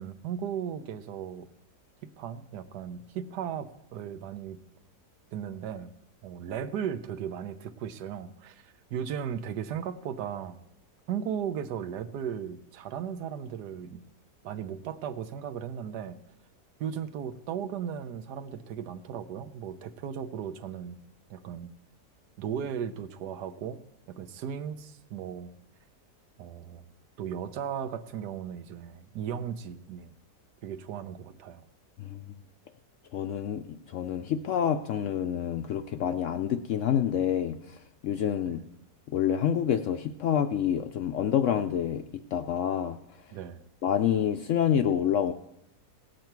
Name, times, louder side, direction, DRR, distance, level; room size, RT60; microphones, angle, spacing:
voice 1, 0.0-1.5 2.0-4.6 5.3-5.9 6.2-10.6 11.1-14.0 14.4-16.2 16.8-21.0 21.3-21.7 22.4-25.5 26.4-26.9 27.2-30.1 30.6-31.7 38.5-38.6 43.3-43.6, right 8 dB, 80° right, 11 dB, 1.3 m, -36 dB
voice 2, 33.1-38.6 39.1-42.0 42.3-43.0 43.8-45.3, left 9 dB, 70° left, 8 dB, 0.7 m, -27 dB
18.0 x 7.7 x 4.6 m, 0.85 s
omnidirectional pair, 1.7 m